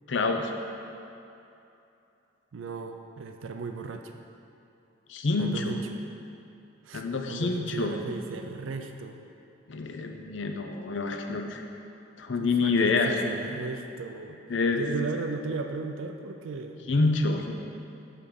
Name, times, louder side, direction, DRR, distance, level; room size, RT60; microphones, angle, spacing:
voice 1, 0.1-0.5 5.1-5.8 6.9-7.9 9.7-11.6 12.2-13.2 14.5-14.8 16.9-17.5, left 3 dB, 70° left, 4 dB, 0.6 m, -27 dB
voice 2, 2.5-4.2 5.4-5.9 6.8-9.2 12.4-14.4 14.8-16.8, right 4 dB, 85° right, 5 dB, 0.4 m, -36 dB
7.4 x 4.7 x 5.1 m, 2.8 s
head